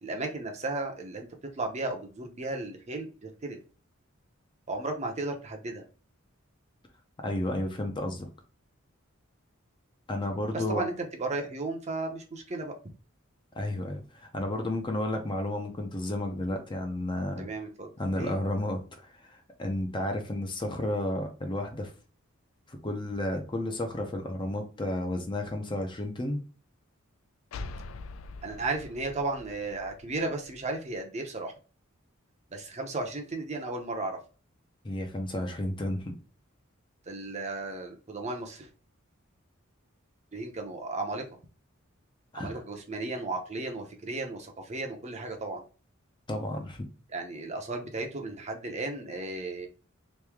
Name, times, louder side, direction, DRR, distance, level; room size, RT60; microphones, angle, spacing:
voice 1, 0.0-1.3 1.5-3.6 4.7-5.8 10.5-12.7 17.4-18.3 28.4-31.5 32.5-34.2 37.1-38.7 40.3-41.2 42.3-45.6 47.1-49.7, right 2 dB, 35° right, 3 dB, 0.7 m, -34 dB
voice 2, 7.2-8.3 10.1-10.9 13.6-17.5 18.0-21.9 22.7-26.4 34.8-36.1 42.3-42.6 46.3-46.9, left 1 dB, 25° left, 4 dB, 0.6 m, -32 dB
sound 1, 27.5-31.0, left 3 dB, 70° left, 0.3 m, -44 dB
3.1 x 2.7 x 3.5 m, 0.36 s
head